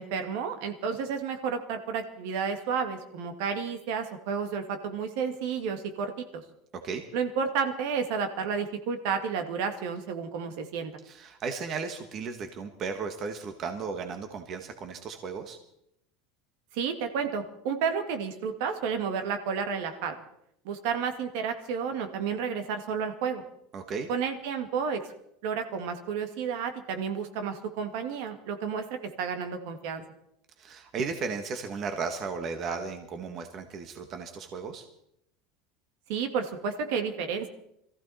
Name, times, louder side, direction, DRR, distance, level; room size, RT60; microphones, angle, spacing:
voice 1, 0.0-6.4 7.1-10.9 16.7-20.2 20.7-23.4 24.1-25.1 25.4-28.9 29.2-30.0 36.1-37.5, right 6 dB, 65° right, 6 dB, 2.0 m, -31 dB
voice 2, 11.0-15.6 23.7-24.1 30.6-34.8, right 5 dB, 35° right, 6 dB, 1.5 m, -35 dB
22.5 x 15.0 x 4.2 m, 0.77 s
supercardioid pair, 155°, 0 cm